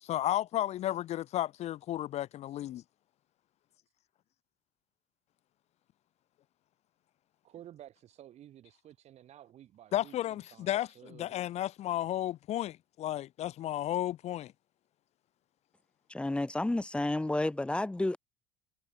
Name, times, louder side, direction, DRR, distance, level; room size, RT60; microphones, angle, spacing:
voice 1, 0.0-2.8 9.9-14.5, left 13 dB, 50° left, 0.9 m, -33 dB
voice 2, 7.4-11.3, right 11 dB, 50° right, 2.9 m, -53 dB
voice 3, 16.1-18.2, left 2 dB, 5° left, 0.9 m, -31 dB
hypercardioid pair, 65°, 14 cm